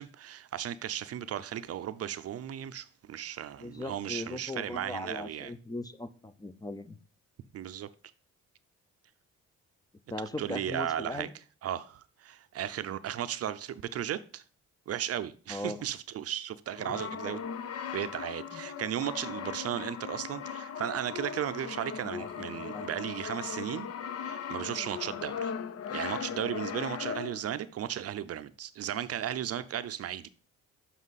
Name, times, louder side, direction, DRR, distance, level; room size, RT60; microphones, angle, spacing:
voice 1, 0.0-5.5 7.5-7.9 10.4-11.3 11.6-14.4 14.9-17.4 17.9-23.9 24.2-25.5 25.9-30.3, right 10 dB, 55° right, 0.5 m, -35 dB
voice 2, 3.6-7.0 10.1-11.3 15.5-15.8 16.9-17.0 17.3-17.4 18.5-18.6 22.1-22.9, left 1 dB, 15° left, 0.5 m, -39 dB
Brass instrument, 16.7-27.6, left 7 dB, 55° left, 0.7 m, -38 dB
7.2 x 5.6 x 4.1 m
cardioid pair, 90°, 30 cm